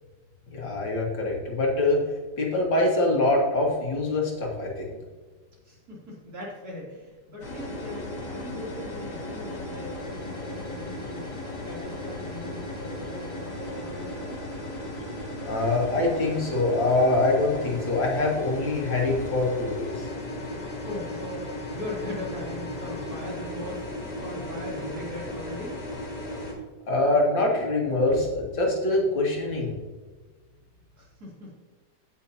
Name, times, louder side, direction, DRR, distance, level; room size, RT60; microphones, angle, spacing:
voice 1, 0.5-2.0 2.4-4.8 15.5-19.9 26.9-29.7, left 2 dB, 85° left, -2 dB, 2.7 m, -24 dB
voice 2, 5.6-11.4 11.6-14.4 20.8-23.9 24.2-25.7 31.0-31.5, left 1 dB, 55° right, -5 dB, 3.7 m, -39 dB
sound 1, 7.4-26.5, left 1 dB, 60° left, 2.6 m, -36 dB
15.5 x 6.0 x 2.8 m, 1.3 s
omnidirectional pair, 2.0 m